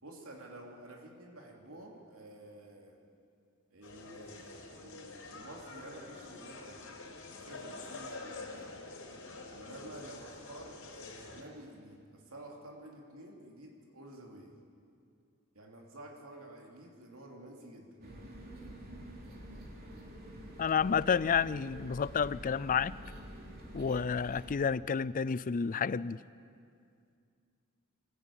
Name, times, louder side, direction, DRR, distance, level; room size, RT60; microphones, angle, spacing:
voice 1, 0.0-3.0 3.7-6.9 7.4-8.7 9.5-14.6 15.5-18.0, right 1 dB, 75° right, 1 dB, 2.9 m, -51 dB
sound 1, 3.8-11.4, left 3 dB, 70° left, 5.0 m, -47 dB
sound 2, 18.0-24.5, equal, 45° right, 3.1 m, -47 dB
voice 2, 20.6-23.0 23.7-26.2, left 6 dB, 40° left, 18 dB, 0.4 m, -30 dB
24.0 x 15.0 x 8.8 m, 2.3 s
head